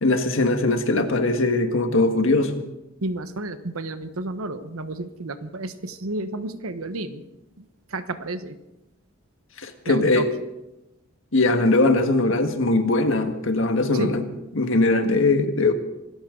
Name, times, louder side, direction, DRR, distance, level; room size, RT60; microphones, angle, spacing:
voice 1, 0.0-2.5 9.6-10.3 11.3-14.2 14.5-15.7, left 2 dB, 65° left, 6 dB, 1.7 m, -20 dB
voice 2, 3.0-7.2 7.6-8.6 9.9-10.3 13.9-14.2, right 2 dB, 90° right, 10 dB, 1.1 m, -31 dB
25.5 x 14.0 x 3.9 m, 0.96 s
head